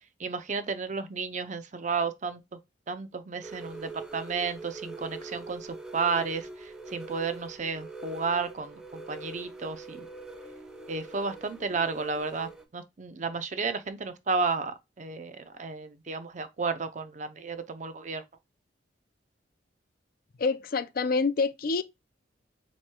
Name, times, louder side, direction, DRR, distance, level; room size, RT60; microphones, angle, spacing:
voice 1, 0.2-2.6 2.9-10.1 10.9-18.2, right 4 dB, 40° right, 0.6 m, -32 dB
sound 1, 3.4-12.7, right 2 dB, 5° right, 0.6 m, -43 dB
voice 2, 20.4-21.8, left 4 dB, 55° left, 0.4 m, -27 dB
7.2 x 3.1 x 2.2 m
head